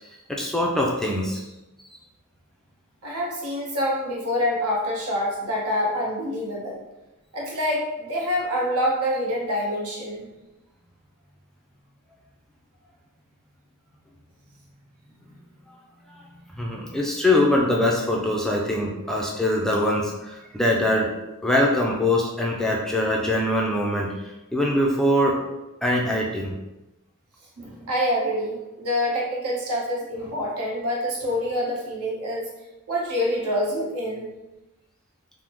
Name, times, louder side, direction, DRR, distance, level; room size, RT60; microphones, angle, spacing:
voice 1, 0.3-1.4 1.9-2.0 16.1-21.1 21.4-25.4 25.8-26.5, left 1 dB, ahead, -2 dB, 0.3 m, -23 dB
voice 2, 3.0-6.8 7.3-10.3 27.6-32.5 32.9-34.3, equal, 85° right, -3 dB, 0.9 m, -26 dB
3.4 x 2.0 x 3.0 m, 0.99 s
head